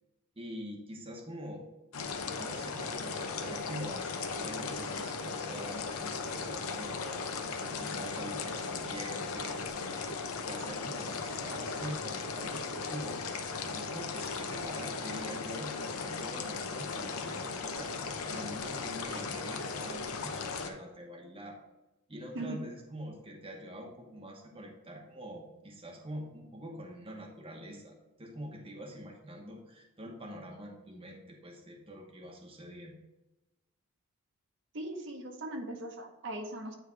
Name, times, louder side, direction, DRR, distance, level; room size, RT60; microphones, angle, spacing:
voice 1, 0.4-1.6 2.4-10.2 10.5-17.9 18.2-21.6 22.1-32.9, equal, 25° right, 0 dB, 1.0 m, -45 dB
sound 1, 1.9-20.7, left 4 dB, 85° left, 0.8 m, -37 dB
voice 2, 22.3-22.6 34.7-36.7, right 1 dB, 55° right, 2 dB, 1.0 m, -39 dB
9.6 x 3.3 x 4.6 m, 0.98 s
head